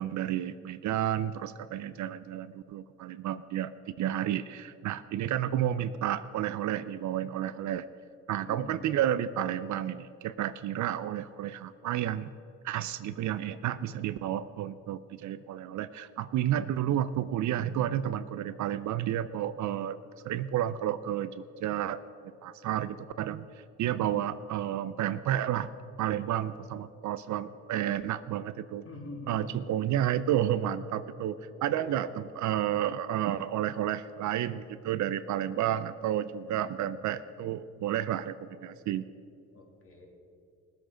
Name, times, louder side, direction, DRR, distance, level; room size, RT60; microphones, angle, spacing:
voice 1, 0.0-7.8 8.3-12.3 12.6-20.0 20.2-22.0 22.4-23.5 23.8-25.7 26.0-28.8 29.3-39.0, right 11 dB, 65° right, 14 dB, 0.5 m, -31 dB
voice 2, 8.5-8.8 23.9-24.3 28.8-29.6 31.3-32.2 36.6-37.0 39.5-40.1, left 2 dB, 45° left, 0 dB, 2.8 m, -45 dB
18.0 x 7.9 x 5.1 m, 2.4 s
cardioid pair, 80°, 31 cm